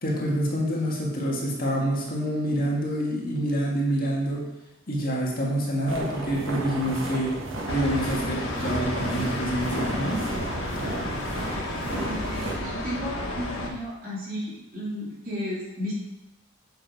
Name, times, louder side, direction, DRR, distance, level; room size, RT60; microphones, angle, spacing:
voice 1, 0.0-4.5 4.9-7.3 7.7-10.3, equal, 45° left, -3 dB, 1.9 m, -27 dB
sound 1, 5.9-12.6, right 1 dB, 75° right, 1.7 m, -33 dB
sound 2, 7.7-13.7, left 1 dB, 90° left, 1.4 m, -32 dB
voice 2, 12.0-15.9, equal, 45° right, -6 dB, 2.8 m, -34 dB
8.0 x 6.2 x 4.7 m, 0.97 s
head